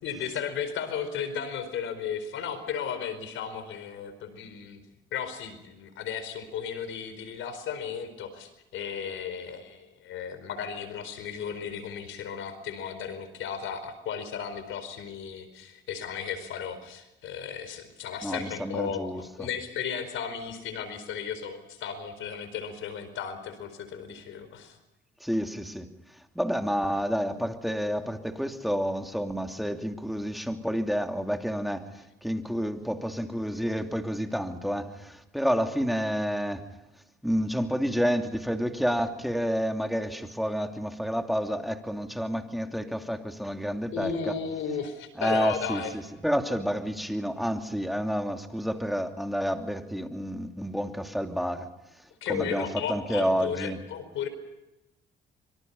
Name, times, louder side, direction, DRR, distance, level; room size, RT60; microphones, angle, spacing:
voice 1, 0.0-4.8 5.1-24.8 43.9-45.9 52.2-54.3, left 7 dB, 80° left, 11 dB, 4.6 m, -35 dB
voice 2, 18.2-19.5 25.2-25.9 26.3-36.7 37.2-44.3 45.2-45.8 46.2-51.7 52.3-53.8, equal, ahead, 5 dB, 2.8 m, -29 dB
25.5 x 24.5 x 5.5 m, 0.96 s
cardioid pair, 90°, 20 cm